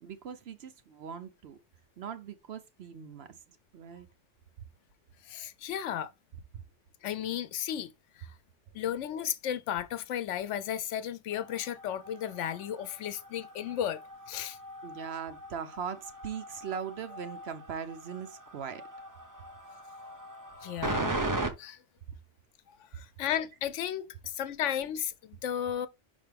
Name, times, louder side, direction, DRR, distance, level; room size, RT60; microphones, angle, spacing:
voice 1, 0.0-1.6 2.0-3.4 3.7-4.1 12.9-13.0 14.8-18.8, right 7 dB, 65° right, 0.9 m, -40 dB
voice 2, 5.2-6.1 7.0-7.9 8.2-8.3 8.7-14.0 14.3-14.6 20.6-21.1 21.6-21.8 22.9-25.9, left 10 dB, 85° left, 1.0 m, -34 dB
sound 1, 11.3-21.5, right 2 dB, 20° right, 0.7 m, -39 dB
5.6 x 5.3 x 3.3 m
omnidirectional pair, 1.2 m